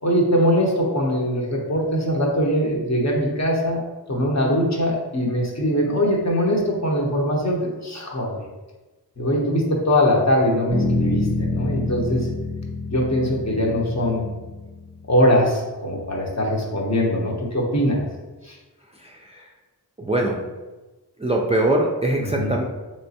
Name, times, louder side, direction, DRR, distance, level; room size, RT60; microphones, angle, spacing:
voice 1, 0.0-3.8 4.1-8.4 9.2-12.3 12.9-14.2 15.1-18.0 18.4-18.5 22.2-22.5, equal, 45° left, -2 dB, 0.8 m, -21 dB
Bass guitar, 10.7-15.1, left 3 dB, 80° left, 1.1 m, -27 dB
voice 2, 19.0-19.4 20.0-20.4 21.2-22.6, right 1 dB, 15° right, -1 dB, 0.3 m, -22 dB
3.3 x 3.0 x 2.7 m, 1.2 s
wide cardioid pair, 40°, 39 cm